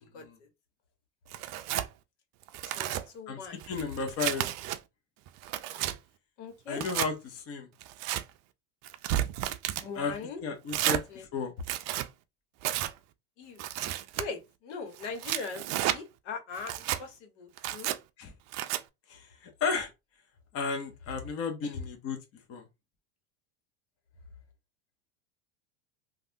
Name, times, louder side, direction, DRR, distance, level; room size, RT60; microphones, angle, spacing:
Tearing, 1.3-1.9 2.4-3.0 3.6-4.8 5.3-5.9 6.7-7.1 7.8-8.2 8.8-9.9 10.7-11.0 11.6-12.1 12.6-12.9 13.6-14.2 15.0-16.0 16.6-17.0 17.6-18.0 18.5-18.8, right 13 dB, 50° right, 0.4 m, -32 dB
voice 1, 2.7-3.6 6.4-6.8 9.8-10.4 10.8-11.2 13.4-13.6 14.2-16.7 17.0-17.9, left 5 dB, 80° left, 1.2 m, -40 dB
voice 2, 3.3-4.5 6.7-7.7 9.9-10.1 10.4-11.5 18.2-18.3 19.1-19.9 20.5-22.2 22.5-22.6, left 5 dB, 40° left, 0.9 m, -34 dB
3.2 x 2.4 x 2.7 m
supercardioid pair, 115°, 35 cm